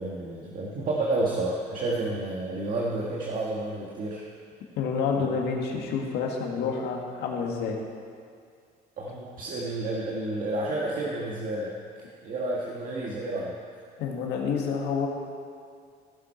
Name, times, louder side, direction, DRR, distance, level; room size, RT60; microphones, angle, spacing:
voice 1, 0.0-4.2 5.2-5.3 9.0-11.7 12.2-13.6, right 2 dB, 55° right, -4 dB, 1.6 m, -30 dB
voice 2, 4.8-7.8 14.0-15.1, left 5 dB, 80° left, 1 dB, 1.8 m, -28 dB
16.0 x 7.7 x 4.4 m, 2.2 s
cardioid pair, 110°, 17 cm